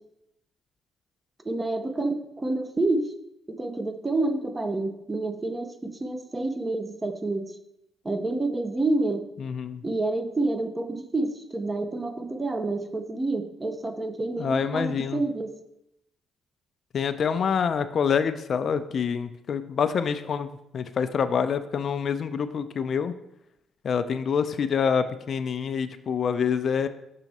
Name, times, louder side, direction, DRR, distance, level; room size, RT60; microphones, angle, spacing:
voice 1, 1.4-3.1 3.5-7.5 8.0-9.2 9.8-15.6, right 2 dB, 20° right, 8 dB, 0.7 m, -28 dB
voice 2, 9.4-9.8 14.4-15.2 16.9-23.1 23.8-26.9, left 6 dB, 55° left, 11 dB, 0.4 m, -26 dB
5.9 x 5.5 x 4.1 m, 0.84 s
cardioid pair, 90°, 0 cm